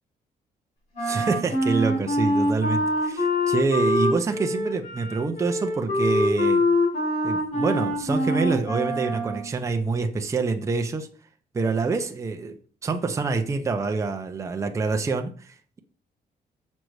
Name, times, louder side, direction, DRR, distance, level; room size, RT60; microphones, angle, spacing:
Wind instrument woodwind instrument, 0.9-9.5, left 1 dB, 55° left, 4.2 m, -24 dB
voice 1, 1.0-6.6 7.2-11.1 11.5-12.6 12.8-15.8, right 4 dB, 20° right, 0.6 m, -26 dB
6.5 x 5.3 x 4.7 m
cardioid pair, 170°, 15 cm